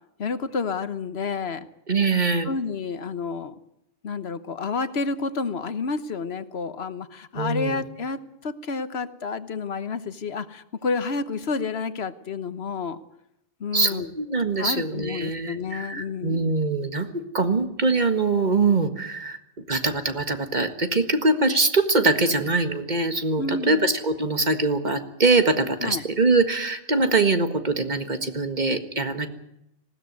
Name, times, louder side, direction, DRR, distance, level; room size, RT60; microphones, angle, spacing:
voice 1, 0.2-1.7 2.4-3.6 4.0-13.0 13.6-14.1 14.6-16.5 23.4-23.9 25.8-26.0, left 4 dB, 60° left, 12 dB, 1.3 m, -30 dB
voice 2, 1.9-2.5 7.4-7.8 13.7-19.4 19.7-29.3, right 3 dB, 35° right, 8 dB, 1.8 m, -23 dB
20.0 x 17.0 x 9.5 m, 0.82 s
omnidirectional pair, 1.3 m